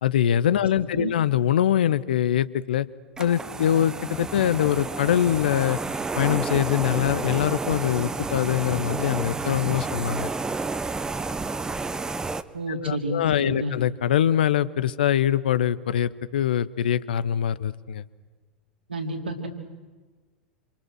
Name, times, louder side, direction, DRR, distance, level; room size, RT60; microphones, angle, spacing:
voice 1, 0.0-2.9 3.2-5.8 6.2-10.3 12.8-18.0, left 10 dB, 60° left, 17 dB, 0.9 m, -23 dB
sound 1, 3.2-12.4, right 3 dB, 10° right, 1.0 m, -30 dB
voice 2, 12.5-13.8 18.9-19.5, right 1 dB, 75° right, 2 dB, 3.7 m, -30 dB
27.5 x 27.0 x 6.4 m, 1.3 s
figure-of-eight pair, 85°, 6 cm